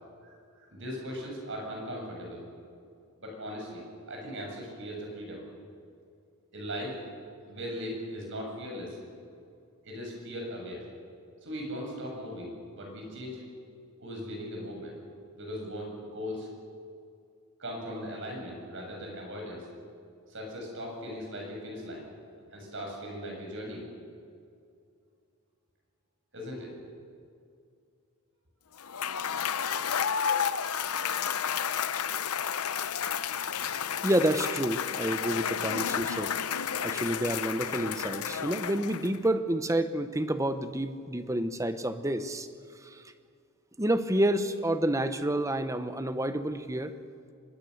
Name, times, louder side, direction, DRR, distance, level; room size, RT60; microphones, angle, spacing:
voice 1, 0.2-2.4 3.2-5.4 6.5-7.0 7.5-9.0 9.8-10.9 11.4-13.4 14.0-15.0 15.4-16.5 17.6-19.7 20.3-22.1 22.5-23.9 26.3-26.8, equal, 60° right, 0 dB, 7.2 m, -39 dB
Cheering / Applause / Crowd, 28.8-39.3, left 8 dB, 90° left, 0.8 m, -31 dB
voice 2, 34.0-36.3 36.8-42.5 42.8-43.0 43.8-46.9, right 1 dB, 15° right, 10 dB, 1.0 m, -29 dB
24.0 x 21.0 x 6.6 m, 2.3 s
head